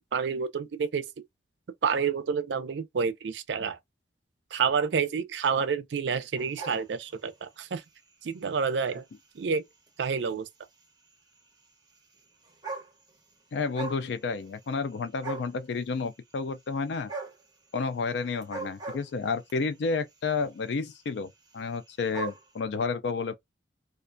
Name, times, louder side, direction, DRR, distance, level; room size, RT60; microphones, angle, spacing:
voice 1, 0.1-1.0 1.8-3.8 4.5-7.8 8.2-9.0 9.4-9.6 10.0-10.5, right 6 dB, 75° right, 0.4 m, -29 dB
sound 1, 6.4-7.5 8.1-8.4 9.2-9.3 9.5-9.6 9.9-10.0 11.1-11.2 12.2-12.3 12.4-13.3 13.6-14.1 14.4-14.9 15.2-15.6 17.1-17.4 18.4-19.6 20.4-20.7 21.0-21.1 21.3-21.4 21.5-22.4, right 3 dB, 20° right, 1.0 m, -38 dB
voice 2, 13.5-17.1 17.7-21.3 21.5-23.4, left 4 dB, 70° left, 0.4 m, -31 dB
2.4 x 2.1 x 2.5 m
head